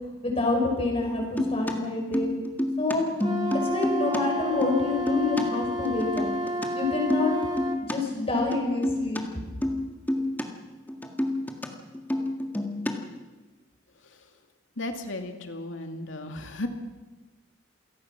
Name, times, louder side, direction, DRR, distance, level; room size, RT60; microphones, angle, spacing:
voice 1, 0.2-2.3 2.8-3.1 3.6-6.3 6.7-7.3 7.9-9.4, left 3 dB, 30° left, 1 dB, 6.1 m, -27 dB
sound 1, 1.2-4.2 4.5-5.4 5.9-6.7 7.0-8.0 8.4-9.2 9.6-9.8 10.1-10.5 10.7-11.7 11.9-13.2, left 1 dB, 10° left, 1.8 m, -28 dB
Wind instrument woodwind instrument, 3.2-7.8, equal, 20° right, 1.9 m, -31 dB
voice 2, 14.8-16.7, left 2 dB, 85° left, 5 dB, 2.4 m, -34 dB
27.5 x 18.0 x 6.0 m, 1.2 s
head